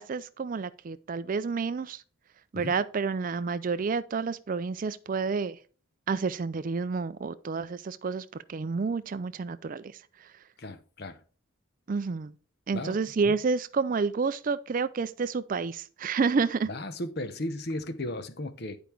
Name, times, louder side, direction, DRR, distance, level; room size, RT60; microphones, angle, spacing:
voice 1, 0.0-2.0 2.5-5.6 6.1-10.3 11.9-12.3 12.7-16.7, right 4 dB, 40° right, 0.3 m, -29 dB
voice 2, 10.6-11.2 12.7-13.0 16.7-18.8, left 1 dB, 50° left, 0.9 m, -35 dB
10.5 x 5.1 x 4.5 m
head